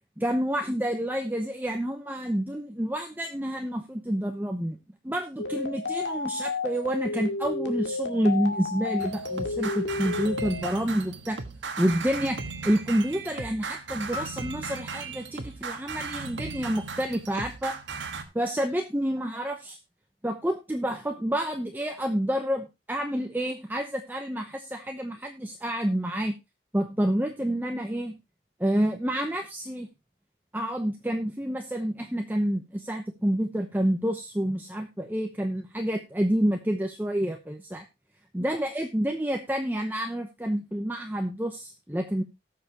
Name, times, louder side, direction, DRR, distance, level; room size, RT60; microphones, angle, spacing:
voice 1, 0.2-4.8 5.0-11.4 11.8-12.4 12.6-17.8 18.3-19.8 20.2-26.3 26.7-28.1 28.6-29.9 30.5-37.8 38.3-42.2, equal, 10° right, 4 dB, 0.8 m, -28 dB
sound 1, 5.4-10.7, left 3 dB, 75° left, 2.0 m, -32 dB
sound 2, 9.0-18.2, right 4 dB, 90° right, 1.4 m, -37 dB
sound 3, 14.1-16.6, left 2 dB, 55° left, 2.6 m, -44 dB
19.0 x 6.7 x 2.9 m, 0.24 s
head